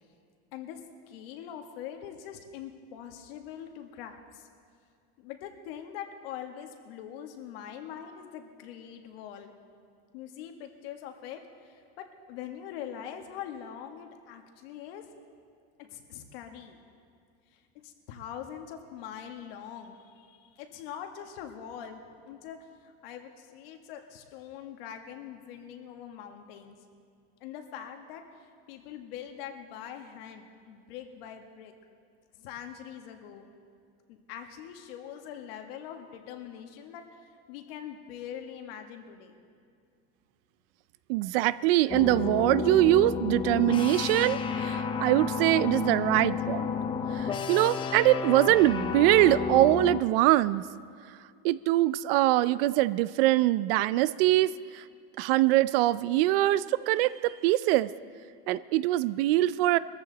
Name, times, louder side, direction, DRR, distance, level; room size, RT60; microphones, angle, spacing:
voice 1, 1.1-4.5 5.2-9.5 10.1-15.0 15.8-16.8 17.8-26.7 27.4-28.2 28.7-31.7 32.4-33.5 34.1-37.0 37.5-39.3, left 9 dB, 75° left, 4 dB, 1.7 m, -43 dB
voice 2, 41.1-46.7 47.1-50.6 51.4-54.8 55.2-57.9 58.5-59.8, right 16 dB, 75° right, 17 dB, 0.5 m, -23 dB
sound 1, 41.9-50.0, left 6 dB, 15° left, 0.5 m, -31 dB
21.5 x 14.5 x 4.1 m, 2.3 s
cardioid pair, 160°, 29 cm